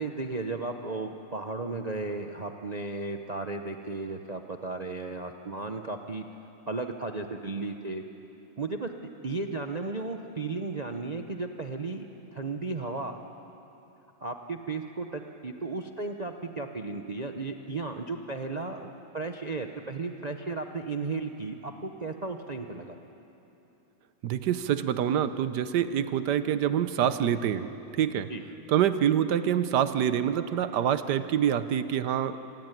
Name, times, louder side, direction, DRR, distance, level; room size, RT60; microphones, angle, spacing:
voice 1, 0.0-6.2 6.7-8.0 8.6-12.1 12.3-13.2 14.2-23.0 28.3-28.4, right 3 dB, 85° right, 4 dB, 0.3 m, -34 dB
voice 2, 24.2-28.3 28.7-32.4, right 9 dB, 65° right, 12 dB, 1.3 m, -26 dB
26.0 x 16.5 x 9.3 m, 3.0 s
omnidirectional pair, 2.1 m